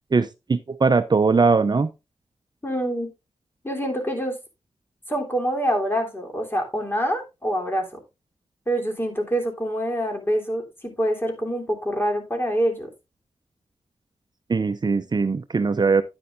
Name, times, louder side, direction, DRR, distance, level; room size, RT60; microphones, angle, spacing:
voice 1, 0.1-1.9 14.5-16.0, right 4 dB, 40° right, 0.6 m, -20 dB
voice 2, 2.6-3.1 3.6-4.3 5.1-7.9 8.7-12.9, equal, 20° left, 3.3 m, -25 dB
10.0 x 9.7 x 2.5 m
cardioid pair, 70°, 11 cm